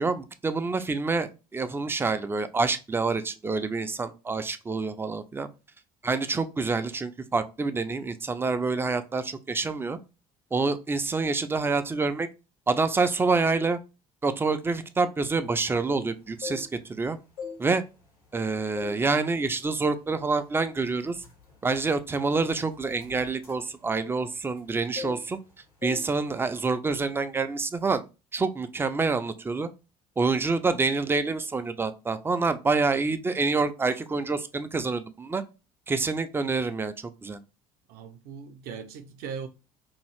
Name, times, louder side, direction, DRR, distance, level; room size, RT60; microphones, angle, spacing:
voice 1, 0.0-5.5 6.0-10.0 10.5-12.3 12.7-13.8 14.2-17.2 17.6-17.8 18.3-21.2 21.6-25.4 25.8-28.0 28.3-29.7 30.2-35.4 35.9-37.4, right 4 dB, 10° right, 0.3 m, -27 dB
sound 1, 16.2-17.0 17.3-18.4 18.8-19.1 19.5-19.7 20.3-20.5 20.8-24.7 25.0-25.5 25.8-26.1 26.4-26.6, left 6 dB, 85° left, 1.4 m, -41 dB
voice 2, 37.9-39.5, right 6 dB, 55° right, 0.6 m, -39 dB
2.7 x 2.4 x 3.3 m
figure-of-eight pair, 55°, 19 cm